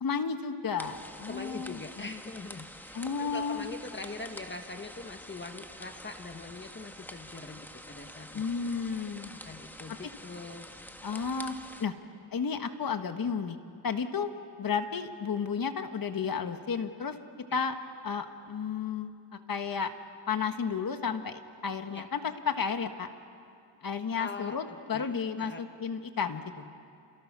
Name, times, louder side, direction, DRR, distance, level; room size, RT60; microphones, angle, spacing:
voice 1, 0.0-2.1 2.9-3.7 8.3-9.3 11.0-11.5 11.8-11.9 12.3-13.6 13.8-14.3 14.6-17.2 17.5-17.7 18.0-19.1 19.5-19.9 20.3-23.1 23.8-26.6, left 6 dB, 50° left, 8 dB, 1.6 m, -32 dB
sound 1, 0.8-11.9, equal, 5° left, 1.5 m, -47 dB
voice 2, 1.3-8.8 9.3-10.7 17.5-17.6 21.9-22.0 24.1-25.6, left 3 dB, 25° left, 5 dB, 1.3 m, -43 dB
29.5 x 28.0 x 6.2 m, 2.4 s
cardioid pair, 105°, 45 cm